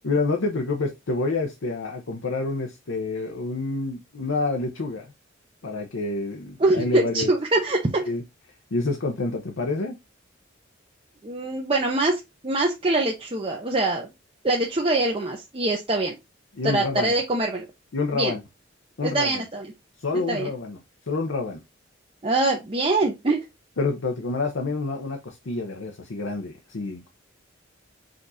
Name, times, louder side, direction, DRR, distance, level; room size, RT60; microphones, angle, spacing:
voice 1, 0.0-5.1 5.6-7.3 8.0-8.2 8.7-10.0 16.6-17.1 17.9-18.4 19.0-19.4 20.0-20.8 21.1-21.6 23.8-27.1, left 3 dB, 90° left, 0.7 m, -28 dB
voice 2, 6.6-8.0 11.2-14.1 14.4-16.2 16.6-17.6 18.1-18.3 19.0-19.7 20.3-20.5 22.2-23.4, right 2 dB, 30° right, 0.7 m, -24 dB
5.1 x 2.5 x 4.0 m
head